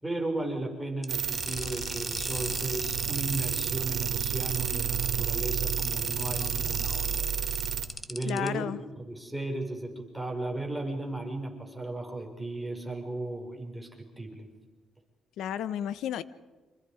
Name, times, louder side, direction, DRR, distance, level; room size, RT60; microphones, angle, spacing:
voice 1, 0.0-7.3 8.1-14.5, right 2 dB, 5° right, 1 dB, 5.4 m, -35 dB
sound 1, 1.0-8.5, left 2 dB, 15° left, 1.4 m, -37 dB
sound 2, 1.1-7.9, right 10 dB, 85° right, 2.4 m, -31 dB
voice 2, 8.2-8.8 15.4-16.2, left 10 dB, 80° left, 15 dB, 1.0 m, -32 dB
29.5 x 27.0 x 5.1 m, 1.3 s
cardioid pair, 90°, 0 cm